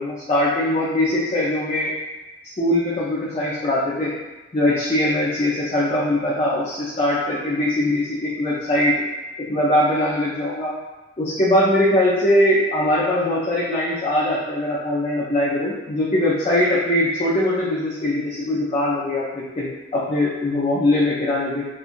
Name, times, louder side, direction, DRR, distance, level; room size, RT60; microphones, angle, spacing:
voice 1, 0.0-1.9 2.6-4.1 4.5-8.9 9.5-10.7 11.2-21.7, left 1 dB, 30° left, -8 dB, 0.5 m, -21 dB
4.3 x 2.3 x 2.5 m, 1.1 s
head